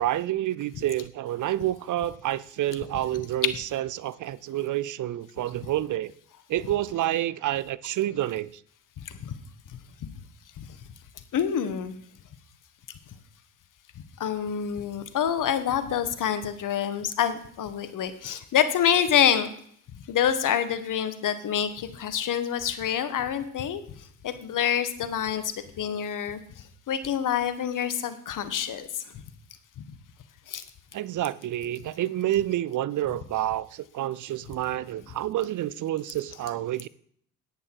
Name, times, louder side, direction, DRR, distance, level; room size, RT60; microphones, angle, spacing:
voice 1, 0.0-6.1 6.5-8.6 30.9-36.9, right 13 dB, 55° right, 0.6 m, -28 dB
voice 2, 11.3-11.9 14.2-19.5 20.1-23.8 24.2-26.4 26.9-28.9 30.5-30.6, left 9 dB, 55° left, 1.4 m, -26 dB
10.0 x 9.7 x 4.7 m
hypercardioid pair, 55°, 37 cm